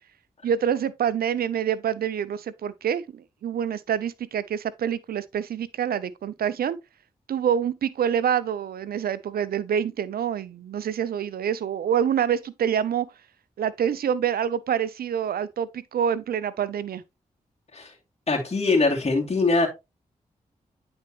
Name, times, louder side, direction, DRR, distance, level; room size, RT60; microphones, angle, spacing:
voice 1, 0.4-6.8 7.3-13.1 13.6-17.0, right 8 dB, 75° right, 0.6 m, -26 dB
voice 2, 18.3-19.7, left 3 dB, 40° left, 2.7 m, -22 dB
9.5 x 4.4 x 3.0 m
supercardioid pair, 40°, 16 cm